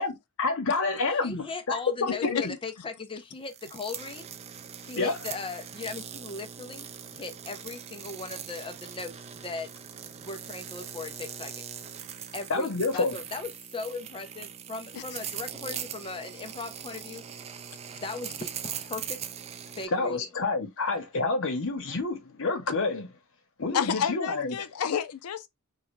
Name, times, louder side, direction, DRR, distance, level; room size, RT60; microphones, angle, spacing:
voice 1, 0.0-2.6 5.0-5.1 12.5-13.1 19.9-23.1 23.6-24.6, left 3 dB, 65° left, 0.9 m, -28 dB
voice 2, 1.2-4.3 4.8-9.2 9.4-11.7 12.3-17.2 17.9-19.2 19.7-20.3, left 4 dB, 25° left, 0.5 m, -38 dB
sound 1, 3.4-19.9, right 8 dB, 30° right, 0.3 m, -41 dB
voice 3, 23.7-25.5, left 7 dB, 85° left, 0.4 m, -29 dB
3.4 x 2.3 x 3.1 m
head